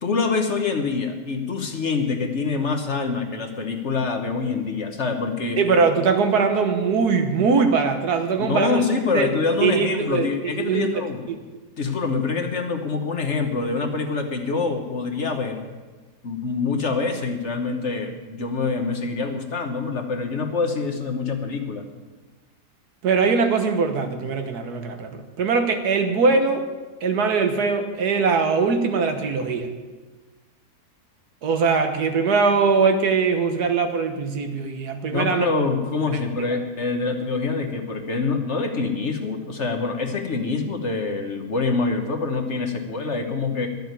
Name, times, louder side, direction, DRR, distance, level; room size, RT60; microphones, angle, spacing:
voice 1, 0.0-5.6 8.4-11.2 11.8-15.6 16.2-21.9 35.1-43.7, left 4 dB, 50° left, 5 dB, 1.3 m, -25 dB
voice 2, 5.6-8.8 9.1-9.3 9.6-11.4 23.0-26.6 27.0-29.7 31.4-35.5 36.1-36.2, right 5 dB, 75° right, 6 dB, 1.7 m, -21 dB
12.0 x 7.3 x 9.3 m, 1.3 s
omnidirectional pair, 1.7 m